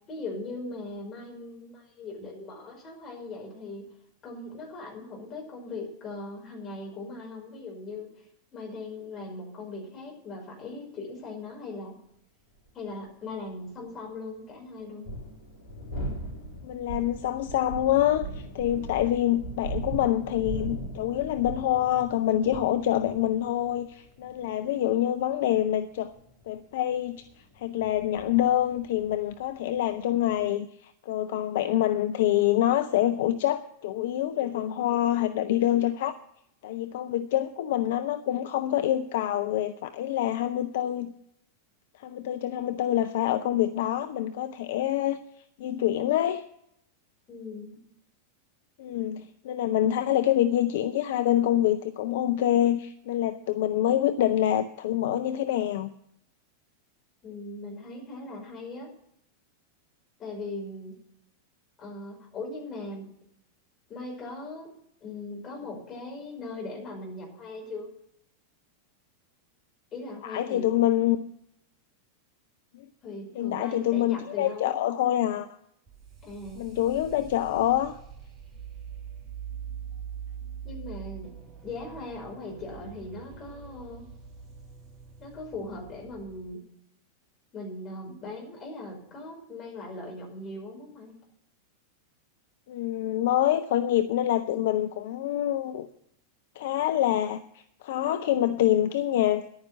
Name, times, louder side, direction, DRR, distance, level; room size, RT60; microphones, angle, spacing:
voice 1, 0.1-3.9 4.2-8.2 8.5-12.0 12.7-15.1 47.3-47.8 57.2-58.9 60.2-61.0 61.8-63.1 63.9-64.7 65.0-67.9 69.9-70.9 73.0-74.8 76.2-76.7 80.6-81.4 81.6-84.1 85.2-86.6 87.5-91.2, left 2 dB, 30° left, 5.3 m, -39 dB
sound 1, 12.7-12.8 14.8-30.4, right 1 dB, 75° left, 6.1 m, -39 dB
voice 2, 16.6-26.1 26.5-27.2 27.6-36.2 36.6-41.1 42.0-45.2 45.6-46.4 48.8-55.9 70.2-71.2 73.4-75.5 76.6-77.9 92.7-95.9 96.6-97.4 97.8-99.4, left 12 dB, 55° left, 0.6 m, -26 dB
sound 2, 75.9-86.5, right 8 dB, 30° right, 1.4 m, -43 dB
11.0 x 9.6 x 7.6 m
figure-of-eight pair, 90°, 0 cm